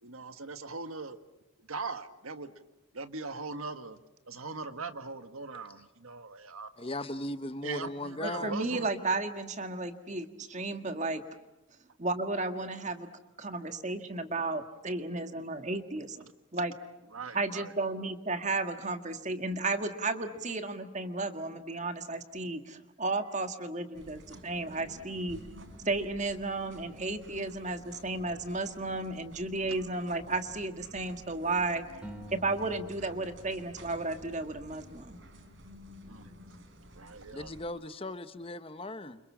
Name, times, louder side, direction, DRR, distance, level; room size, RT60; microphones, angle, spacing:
voice 1, 0.0-1.2 1.7-2.5 2.9-4.0 4.3-6.9 7.6-8.9 17.1-17.7 36.1-36.3 36.9-37.5, right 4 dB, 85° right, 10 dB, 1.6 m, -40 dB
voice 2, 6.8-8.5 37.3-39.2, left 1 dB, 25° left, 11 dB, 1.2 m, -37 dB
voice 3, 8.2-11.2 12.0-13.1 13.4-16.7 17.3-25.4 25.8-31.8 32.3-35.2, right 2 dB, 35° right, 8 dB, 1.7 m, -33 dB
sound 1, 23.9-37.7, equal, 60° right, 4.2 m, -51 dB
sound 2, 32.0-35.2, equal, 5° right, 3.7 m, -50 dB
30.0 x 27.0 x 7.4 m, 0.95 s
head